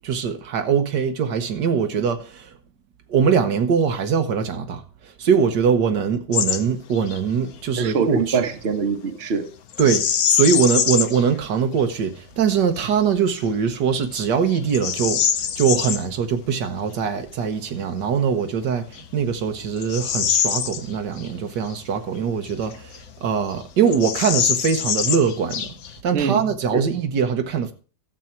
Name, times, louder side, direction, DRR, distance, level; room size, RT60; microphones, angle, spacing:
voice 1, 0.0-2.6 3.1-8.4 9.8-25.7 26.0-27.7, right 6 dB, 80° right, 1.7 m, -22 dB
Bird vocalization bird call bird song, 6.3-6.6 6.9-7.2 9.7-11.2 11.8-11.9 12.5-12.9 13.5-13.6 14.1-16.0 18.1-18.2 18.9-21.3 21.7-21.8 22.4-23.2 23.5-23.6 23.9-26.0, left 8 dB, 65° left, 1.2 m, -24 dB
voice 2, 7.8-9.5 26.1-26.4 26.7-26.8, right 5 dB, 40° right, 1.2 m, -23 dB
12.5 x 7.5 x 4.5 m
omnidirectional pair, 1.8 m